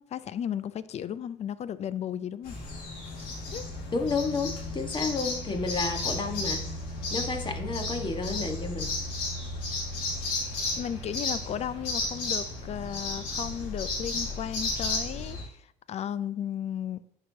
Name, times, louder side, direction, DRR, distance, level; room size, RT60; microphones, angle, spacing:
voice 1, 0.0-2.5 3.0-3.2 3.5-3.7 10.8-15.6 15.9-17.0, left 9 dB, 45° left, 0.5 m, -34 dB
sound 1, 2.4-15.4, left 2 dB, 80° left, 1.8 m, -33 dB
voice 2, 3.9-6.7 7.1-9.0, left 4 dB, 30° left, 1.4 m, -31 dB
10.5 x 4.7 x 2.8 m
supercardioid pair, 70°, 15 cm